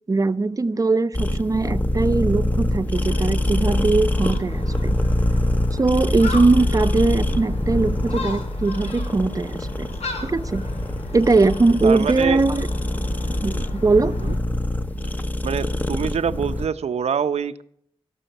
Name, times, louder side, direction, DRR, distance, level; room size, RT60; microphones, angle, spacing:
voice 1, 0.1-5.0 5.7-9.9 10.2-10.7 11.1-12.7 13.4-14.2, right 3 dB, 35° right, 0.7 m, -20 dB
sound 1, 1.1-16.7, left 1 dB, 15° left, 0.9 m, -25 dB
Gull seagull, 2.9-14.4, left 1 dB, 80° left, 2.6 m, -32 dB
voice 2, 11.8-12.5 14.0-14.3 15.4-17.6, right 7 dB, 85° right, 0.7 m, -25 dB
17.0 x 6.3 x 9.1 m
wide cardioid pair, 85°, 11 cm